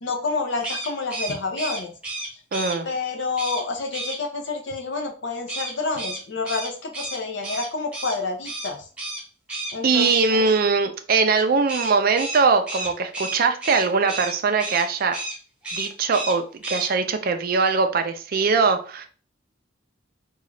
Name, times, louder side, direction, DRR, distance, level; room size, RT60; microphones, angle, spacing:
voice 1, 0.0-1.9 2.8-8.9 9.7-10.4, left 3 dB, 65° left, 3 dB, 0.7 m, -29 dB
sound 1, 0.6-2.8 3.4-3.6 3.9-4.2 5.5-8.1 8.4-8.7 9.0-9.2 9.5-10.2 11.7-14.3 14.6-14.8 15.1-15.4 15.6-16.3 16.6-16.9, right 2 dB, 5° right, 0.8 m, -31 dB
voice 2, 2.5-2.9 9.8-15.1 15.7-19.1, right 4 dB, 45° right, 7 dB, 0.4 m, -21 dB
3.7 x 2.3 x 3.1 m, 0.39 s
head